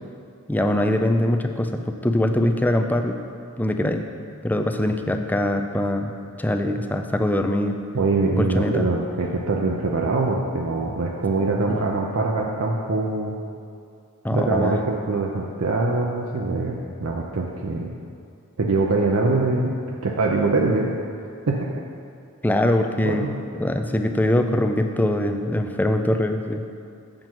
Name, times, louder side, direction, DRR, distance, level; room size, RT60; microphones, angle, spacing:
voice 1, 0.5-3.2 3.6-4.0 4.4-7.8 8.4-8.9 11.7-12.0 14.2-14.8 22.4-26.6, left 1 dB, 10° left, 5 dB, 0.4 m, -23 dB
voice 2, 7.9-13.3 14.3-17.9 18.6-20.9 21.5-21.7 23.0-23.4, right 3 dB, 80° right, -1 dB, 0.6 m, -23 dB
7.6 x 7.3 x 4.5 m, 2.4 s
head